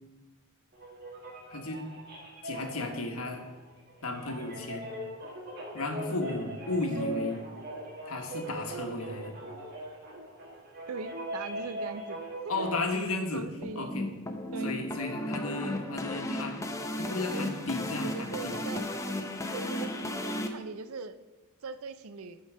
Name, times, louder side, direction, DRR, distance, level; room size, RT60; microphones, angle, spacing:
sound 1, 0.7-12.8, right 1 dB, 45° right, 1.8 m, -40 dB
voice 1, 1.5-1.8 2.4-3.4 4.0-4.9 5.7-7.4 8.1-9.3 12.5-13.5 13.7-14.1 14.6-16.7 17.0-18.6, left 2 dB, 75° left, 3 dB, 1.3 m, -34 dB
voice 2, 10.9-12.2 12.4-12.7 13.3-13.9 14.5-14.8 17.3-17.5 17.9-18.8 19.5-21.2 21.6-22.4, right 4 dB, 70° right, 13 dB, 0.5 m, -40 dB
sound 2, 13.6-20.5, left 1 dB, 15° left, 0.6 m, -35 dB
11.0 x 3.9 x 6.2 m, 1.2 s
head